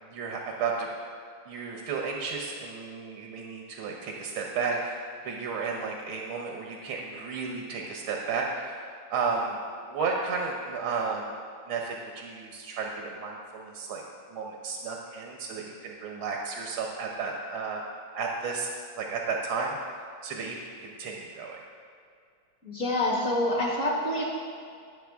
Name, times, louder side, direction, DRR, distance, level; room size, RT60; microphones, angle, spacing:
voice 1, 0.0-0.9 1.5-11.3 11.7-14.0 14.3-17.8 18.1-18.7 19.0-19.8 20.2-21.6, right 4 dB, 90° right, 0 dB, 1.9 m, -33 dB
voice 2, 22.6-24.2, left 1 dB, 40° left, -4 dB, 2.3 m, -27 dB
18.0 x 7.0 x 3.5 m, 2.2 s
omnidirectional pair, 2.2 m